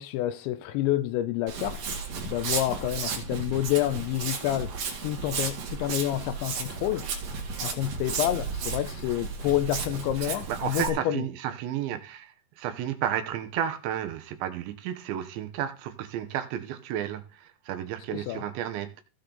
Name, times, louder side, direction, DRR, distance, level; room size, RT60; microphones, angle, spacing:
voice 1, 0.0-1.9 2.2-7.1 7.6-11.3 18.1-18.4, left 13 dB, 80° left, 2.8 m, -29 dB
Walk footsteps, 1.5-10.9, right 5 dB, 50° right, 3.5 m, -33 dB
voice 2, 10.2-19.0, right 10 dB, 75° right, 3.3 m, -32 dB
17.0 x 6.4 x 4.0 m
omnidirectional pair, 5.5 m